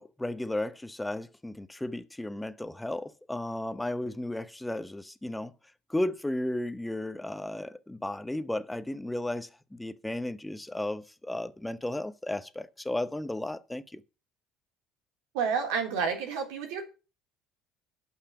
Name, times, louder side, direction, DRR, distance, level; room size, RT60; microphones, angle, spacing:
voice 1, 0.0-5.5 5.9-14.0, left 1 dB, 10° left, 0.9 m, -34 dB
voice 2, 15.3-16.9, right 6 dB, 85° right, 3.6 m, -30 dB
11.5 x 5.8 x 6.0 m
supercardioid pair, 95°, 0 cm